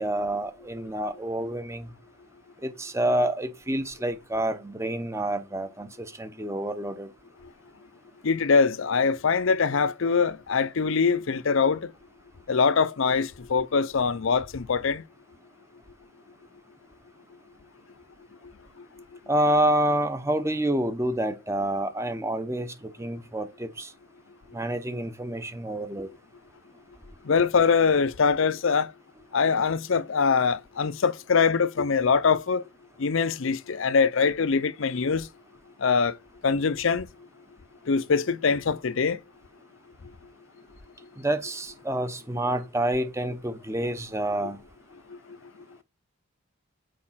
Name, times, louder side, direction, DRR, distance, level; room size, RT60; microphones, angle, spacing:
voice 1, 0.0-1.9 2.6-7.1 19.3-23.9 24.5-26.1 41.2-44.6, right 1 dB, 15° right, 0.7 m, -28 dB
voice 2, 8.2-11.9 12.5-15.0 27.2-28.9 29.3-32.6 33.0-35.3 35.8-36.2 36.4-37.1 37.9-39.2, left 5 dB, 65° left, 0.5 m, -23 dB
6.5 x 4.9 x 5.6 m
head